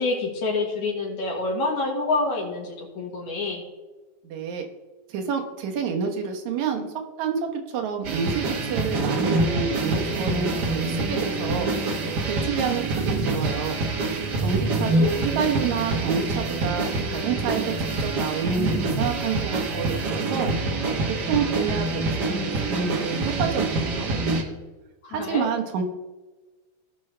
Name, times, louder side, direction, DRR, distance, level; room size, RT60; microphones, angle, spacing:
voice 1, 0.0-3.6 14.8-15.2 25.0-25.5, left 3 dB, 75° left, -3 dB, 3.0 m, -27 dB
voice 2, 4.2-4.6 5.1-6.9 7.2-11.7 12.3-13.8 14.4-20.5 21.3-24.1 25.1-25.8, right 6 dB, 75° right, 4 dB, 2.4 m, -28 dB
sound 1, 8.0-24.4, right 3 dB, 55° right, 1.1 m, -26 dB
17.5 x 6.1 x 3.3 m, 1.2 s
omnidirectional pair, 3.4 m